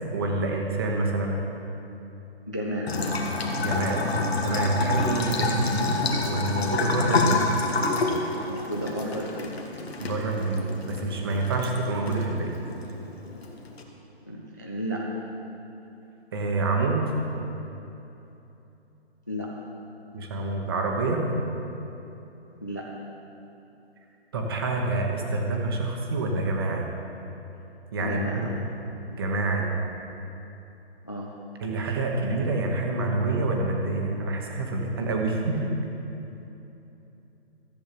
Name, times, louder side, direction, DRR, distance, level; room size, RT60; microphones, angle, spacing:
voice 1, 0.1-1.4 3.6-4.1 4.4-7.5 10.0-12.6 16.3-17.1 20.1-21.3 24.3-26.9 27.9-28.6 29.1-29.8 31.6-35.7, right 2 dB, 20° right, 1 dB, 1.0 m, -27 dB
voice 2, 2.5-3.0 8.5-9.6 14.3-15.0 19.3-19.5 22.6-22.9 28.0-28.5 31.0-31.3, equal, 20° left, -2 dB, 0.4 m, -32 dB
Bathtub (filling or washing) / Trickle dribble, 2.9-13.8, left 3 dB, 70° left, 1.7 m, -28 dB
14.0 x 8.3 x 6.0 m, 3.0 s
hypercardioid pair, 170°, 32 cm